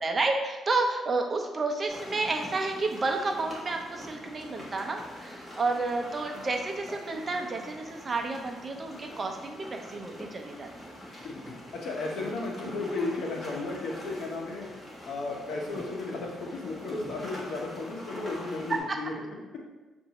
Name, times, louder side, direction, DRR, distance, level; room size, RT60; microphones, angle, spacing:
voice 1, 0.0-11.0 18.7-19.0, right 3 dB, 35° right, 3 dB, 0.6 m, -31 dB
sound 1, 1.9-18.8, left 1 dB, 25° left, 1.5 m, -44 dB
voice 2, 11.2-14.7 15.1-19.1, left 3 dB, 70° left, -1 dB, 1.0 m, -34 dB
6.8 x 2.6 x 3.0 m, 1.2 s
cardioid pair, 90°, 0 cm